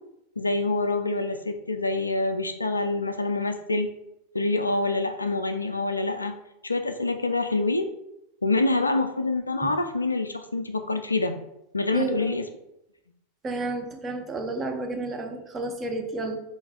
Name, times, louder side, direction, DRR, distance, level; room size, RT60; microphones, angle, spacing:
voice 1, 0.4-3.9 4.3-6.4 6.6-7.9 8.4-11.4 11.7-12.4, left 2 dB, 85° left, 8 dB, 0.3 m, -26 dB
voice 2, 11.9-12.4 13.4-16.4, right 2 dB, 20° right, 3 dB, 0.6 m, -31 dB
3.9 x 2.5 x 3.5 m, 0.83 s
figure-of-eight pair, 90°, 0 cm